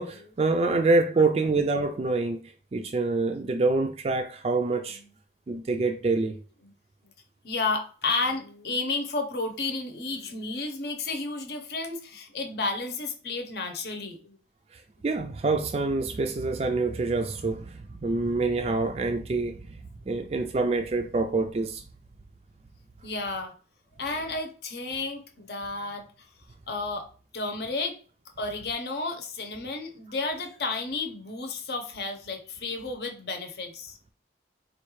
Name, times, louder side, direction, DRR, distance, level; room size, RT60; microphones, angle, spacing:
voice 1, 0.0-2.4 2.7-5.0 5.5-6.4 14.7-19.8 20.1-21.8, right 3 dB, 35° right, 0.3 m, -26 dB
voice 2, 7.4-14.4 23.0-23.5 24.0-26.1 26.7-27.1 27.3-28.0 28.4-34.0, left 3 dB, 65° left, 0.8 m, -32 dB
4.3 x 2.4 x 3.1 m
head